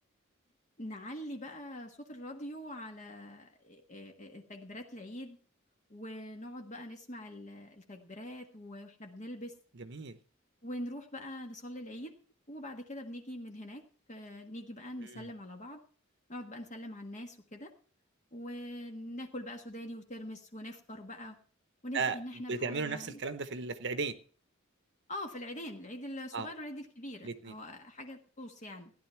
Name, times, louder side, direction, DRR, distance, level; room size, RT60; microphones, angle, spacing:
voice 1, 0.8-5.4 5.9-9.5 10.6-12.1 12.5-15.8 16.3-17.7 18.3-21.4 21.8-23.2 25.1-28.9, left 1 dB, 35° left, 1.5 m, -43 dB
voice 2, 9.8-10.2 15.0-15.3 21.9-22.2 22.5-24.2 26.3-26.5 27.2-27.5, right 4 dB, 60° right, 0.9 m, -35 dB
15.5 x 10.5 x 4.5 m
head